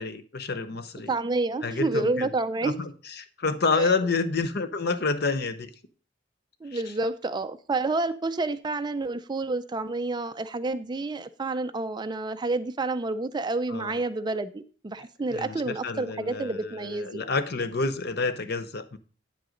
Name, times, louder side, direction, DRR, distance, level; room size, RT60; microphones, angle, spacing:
voice 1, 0.0-1.1 1.6-2.3 2.6-2.9 3.2-5.7 6.7-6.8 13.7-14.0 15.3-19.0, left 4 dB, 55° left, 0.8 m, -29 dB
voice 2, 1.1-2.7 3.8-4.0 6.6-17.2, right 2 dB, 20° right, 0.4 m, -29 dB
9.3 x 7.9 x 3.8 m
head